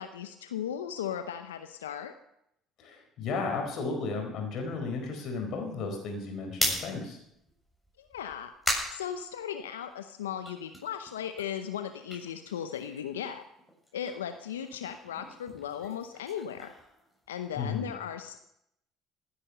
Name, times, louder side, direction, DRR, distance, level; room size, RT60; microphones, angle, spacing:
voice 1, 0.0-2.1 8.0-8.5 8.9-13.4 13.9-16.7 17.3-18.4, left 9 dB, 90° left, 9 dB, 0.7 m, -37 dB
voice 2, 2.8-7.2 17.5-17.9, left 4 dB, 60° left, 3 dB, 4.7 m, -34 dB
sound 1, 6.4-9.9 10.3-13.3 13.5-17.7, equal, 5° left, 7.2 m, -37 dB
15.5 x 9.9 x 6.7 m, 0.78 s
hypercardioid pair, 60°, 0 cm